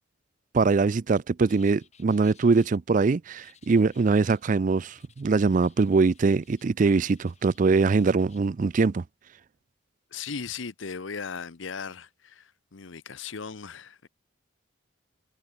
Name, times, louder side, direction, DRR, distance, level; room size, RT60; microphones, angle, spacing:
voice 1, 0.5-9.0, right 4 dB, 40° right, 0.4 m, -22 dB
sound 1, 1.5-2.8 3.4-4.5 5.0-6.7 7.0-8.5, left 8 dB, 35° left, 4.6 m, -60 dB
voice 2, 10.1-14.1, left 5 dB, 70° left, 0.8 m, -37 dB
head